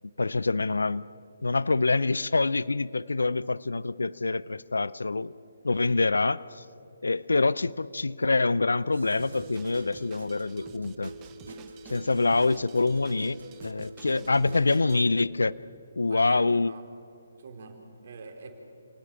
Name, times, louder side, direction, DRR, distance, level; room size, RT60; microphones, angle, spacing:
voice 1, 0.2-1.1 1.4-5.3 5.6-6.6 7.0-11.1 11.9-15.6 16.0-16.7, left 3 dB, 80° left, 20 dB, 0.5 m, -26 dB
sound 1, 8.9-15.1, right 1 dB, 70° right, 3.1 m, -44 dB
Drum kit, 9.2-15.1, right 9 dB, 20° right, 1.1 m, -51 dB
voice 2, 16.1-16.8 17.4-18.5, right 4 dB, 50° right, 3 dB, 3.9 m, -45 dB
28.5 x 19.0 x 7.0 m, 2.4 s
figure-of-eight pair, 145°, 0 cm